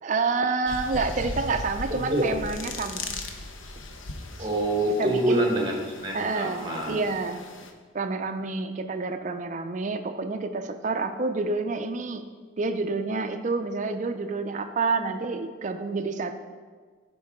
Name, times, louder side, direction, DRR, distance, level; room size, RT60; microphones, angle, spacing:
voice 1, 0.0-3.1 5.0-5.5 6.1-7.4 7.9-12.3 12.6-16.4, right 3 dB, 40° right, 7 dB, 0.4 m, -28 dB
sound 1, 0.7-7.7, left 2 dB, 75° left, 0.7 m, -38 dB
voice 2, 1.9-2.3 4.4-7.0, right 1 dB, 20° right, 0 dB, 1.1 m, -26 dB
11.0 x 4.6 x 3.5 m, 1.5 s
head